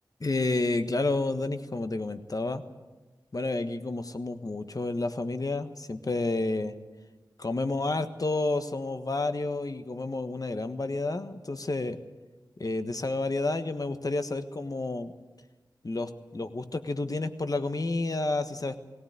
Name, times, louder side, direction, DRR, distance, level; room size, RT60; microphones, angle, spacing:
voice 1, 0.2-2.6 3.3-6.8 7.4-12.0 12.6-15.1 15.8-18.8, left 2 dB, 50° left, 9 dB, 1.4 m, -30 dB
18.5 x 17.5 x 9.5 m, 1.2 s
wide cardioid pair, 55°, 8 cm